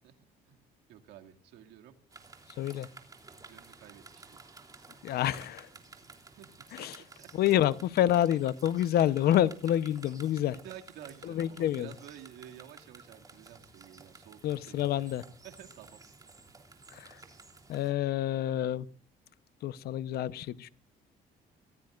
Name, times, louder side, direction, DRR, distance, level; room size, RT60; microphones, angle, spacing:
voice 1, 0.9-1.9 3.4-4.4 6.2-7.3 10.6-14.4 14.7-15.1 15.4-16.0, right 10 dB, 90° right, 2.4 m, -51 dB
sound 1, 2.1-17.9, right 3 dB, 20° right, 3.3 m, -53 dB
voice 2, 2.6-2.9 5.0-5.7 6.7-7.0 7.3-10.6 11.2-11.9 14.4-15.2 16.9-17.2 17.7-18.9 19.6-20.7, left 12 dB, 70° left, 0.9 m, -28 dB
24.5 x 16.5 x 2.5 m
cardioid pair, 110°, 17 cm